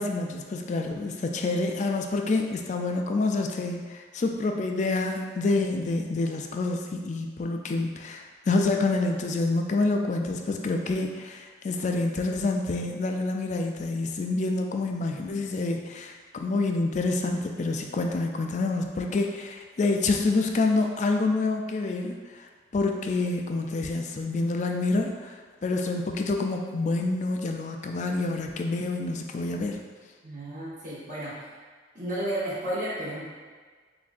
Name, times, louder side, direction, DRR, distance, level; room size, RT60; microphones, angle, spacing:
voice 1, 0.0-25.4 25.6-29.8, left 3 dB, 40° left, 3 dB, 0.3 m, -27 dB
voice 2, 30.2-31.5 31.9-33.2, right 1 dB, 40° right, -9 dB, 1.1 m, -32 dB
7.1 x 2.6 x 2.5 m, 1.5 s
head